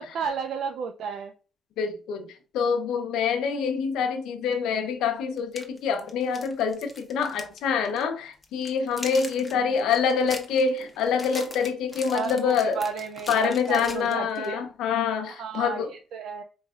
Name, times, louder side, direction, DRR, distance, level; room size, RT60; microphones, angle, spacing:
voice 1, 0.0-1.3 9.5-9.9 12.1-14.6 15.3-15.9 16.1-16.4, right 6 dB, 70° right, 0.4 m, -33 dB
voice 2, 1.8-2.3 2.5-12.8 13.3-15.9, left 6 dB, 85° left, 0.7 m, -26 dB
sound 1, 4.5-4.6 5.4-7.6 7.8-8.0 8.4-14.5, left 2 dB, 20° left, 1.0 m, -41 dB
5.1 x 3.2 x 2.4 m
cardioid pair, 90°, 0 cm